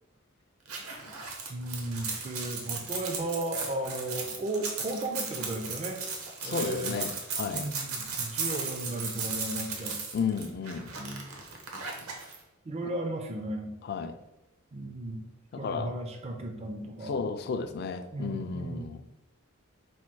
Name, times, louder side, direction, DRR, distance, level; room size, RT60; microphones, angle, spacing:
sound 1, 0.7-12.4, right 5 dB, 75° right, 0.8 m, -36 dB
voice 1, 1.5-6.0 6.4-7.0 7.4-10.0 11.0-11.2 12.7-13.7 14.7-15.2 15.5-17.2 18.1-18.9, right 1 dB, 30° right, 3 dB, 0.4 m, -35 dB
voice 2, 6.4-7.7 10.1-11.0 12.8-12.9 13.8-14.2 15.5-15.9 17.1-19.0, left 5 dB, 45° left, 9 dB, 0.3 m, -33 dB
4.3 x 2.3 x 4.5 m, 0.96 s
head